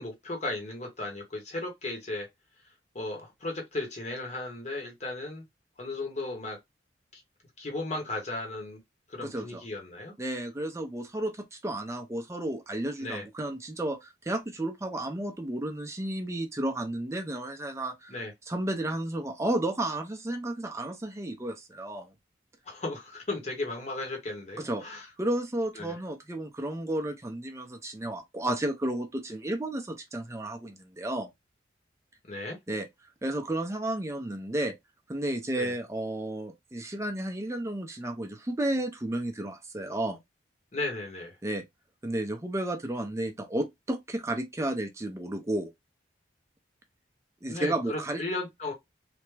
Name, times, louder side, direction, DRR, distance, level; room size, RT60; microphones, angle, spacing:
voice 1, 0.0-2.3 2.9-5.4 5.8-6.6 7.1-7.2 7.6-8.8 9.1-10.1 13.0-13.2 18.1-18.3 22.7-25.1 25.7-25.9 32.2-32.6 35.6-35.7 40.7-41.4 47.5-48.7, left 2 dB, 40° left, 0.9 m, -35 dB
voice 2, 9.2-9.6 10.2-18.1 18.5-22.1 24.6-24.8 25.2-31.3 32.7-32.9 33.2-34.7 35.1-40.2 41.4-41.6 42.0-45.7 47.4-48.2, right 1 dB, 15° right, 0.5 m, -32 dB
3.3 x 2.1 x 3.1 m
head